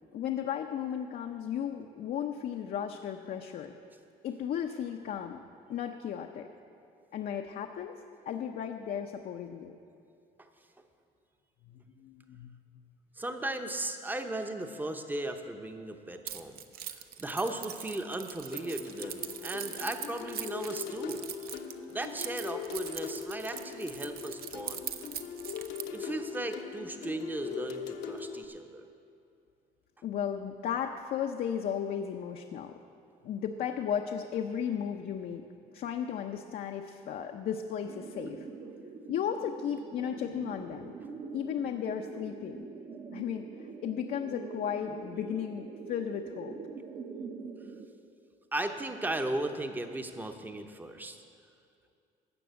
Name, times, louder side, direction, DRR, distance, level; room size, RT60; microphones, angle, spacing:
voice 1, 0.1-3.7 4.2-5.4 5.7-6.5 7.1-7.9 8.3-9.7 11.6-12.6 30.0-32.7 33.2-35.4 35.7-38.5 39.1-41.0 41.3-42.7 43.1-43.5 43.8-46.6, left 8 dB, 60° left, 3 dB, 0.6 m, -35 dB
voice 2, 13.2-16.6 17.2-21.3 21.9-24.9 25.9-28.9 48.5-51.2, right 1 dB, 10° right, 6 dB, 0.8 m, -36 dB
Keys jangling, 16.3-26.0, right 10 dB, 65° right, 0.7 m, -41 dB
sound 1, 18.5-28.4, left 7 dB, 80° left, 1.0 m, -41 dB
sound 2, 37.9-47.9, right 5 dB, 45° right, 1.0 m, -44 dB
14.0 x 6.0 x 8.1 m, 2.5 s
cardioid pair, 110°, 17 cm